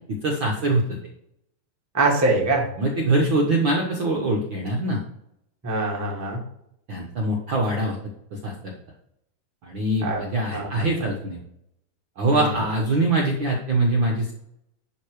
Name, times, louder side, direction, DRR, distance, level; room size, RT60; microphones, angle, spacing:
voice 1, 0.1-1.0 2.8-5.0 6.9-8.0 8.3-8.7 9.6-11.4 12.2-14.3, right 2 dB, 60° right, -1 dB, 1.3 m, -23 dB
voice 2, 1.9-2.7 5.6-6.4 10.0-10.2 10.5-10.8 12.3-12.5, right 2 dB, 10° right, -1 dB, 0.8 m, -23 dB
11.0 x 3.8 x 4.7 m, 0.76 s
omnidirectional pair, 3.6 m